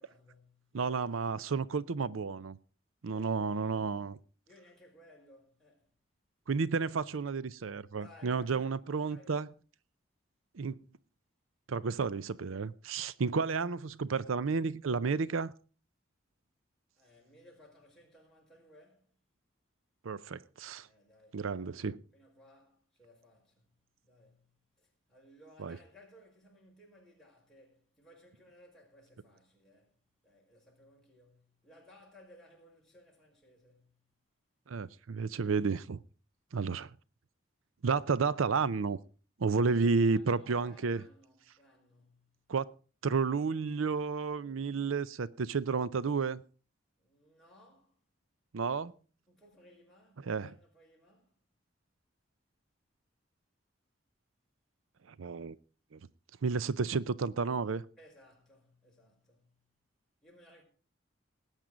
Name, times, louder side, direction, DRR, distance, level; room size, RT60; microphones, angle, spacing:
voice 1, 0.0-1.1 3.1-3.8 4.5-5.9 8.0-9.4 17.0-19.2 20.8-34.1 39.7-42.4 47.0-48.0 49.3-51.4 58.0-59.7 60.2-60.6, left 1 dB, ahead, 5.4 m, -61 dB
voice 2, 0.7-2.6 3.0-4.2 6.5-9.5 10.5-10.8 11.7-15.5 20.0-20.9 21.3-22.0 25.6-25.8 34.7-36.0 36.5-36.9 37.8-39.0 39.4-41.0 42.5-42.7 43.0-46.4 48.5-48.9 50.3-50.5 55.2-55.6 55.9-56.0 56.4-57.8, right 4 dB, 85° right, 0.6 m, -31 dB
18.5 x 9.0 x 5.0 m
head